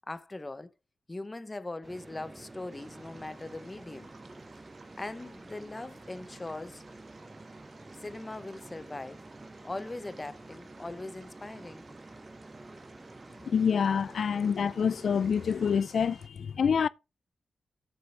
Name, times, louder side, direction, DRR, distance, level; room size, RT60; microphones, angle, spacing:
voice 1, 0.1-0.7 1.1-4.1 5.0-6.8 8.0-9.3 9.6-11.9, left 2 dB, 20° left, 0.7 m, -40 dB
sound 1, 1.8-15.8, right 2 dB, 20° right, 0.5 m, -49 dB
sound 2, 2.7-16.3, right 3 dB, 50° right, 1.4 m, -57 dB
voice 2, 13.5-16.9, left 7 dB, 65° left, 0.4 m, -27 dB
13.0 x 7.1 x 3.3 m
wide cardioid pair, 135°, 0 cm